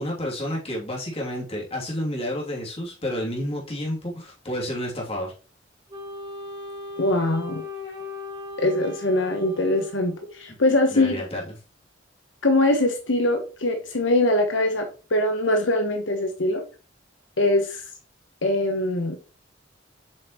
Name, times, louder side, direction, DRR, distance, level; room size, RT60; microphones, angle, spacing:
voice 1, 0.0-5.3 10.9-11.4, equal, 30° left, -3 dB, 2.8 m, -30 dB
Wind instrument woodwind instrument, 5.9-10.5, left 2 dB, 25° right, 3.4 m, -37 dB
voice 2, 7.0-7.6 8.6-11.1 12.4-16.6 17.4-17.8 18.4-19.2, left 1 dB, 75° left, 4 dB, 1.1 m, -22 dB
7.6 x 5.3 x 3.0 m, 0.35 s
head